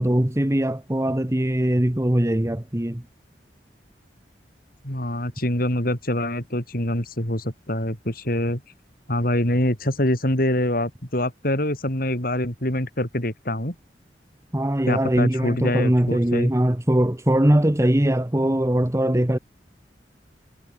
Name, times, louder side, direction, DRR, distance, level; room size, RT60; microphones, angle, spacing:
voice 1, 0.0-3.0 14.5-19.4, right 1 dB, 15° right, 1.1 m, -21 dB
voice 2, 4.8-8.6 9.1-13.8 14.9-16.5, left 1 dB, 55° left, 7.1 m, -25 dB
head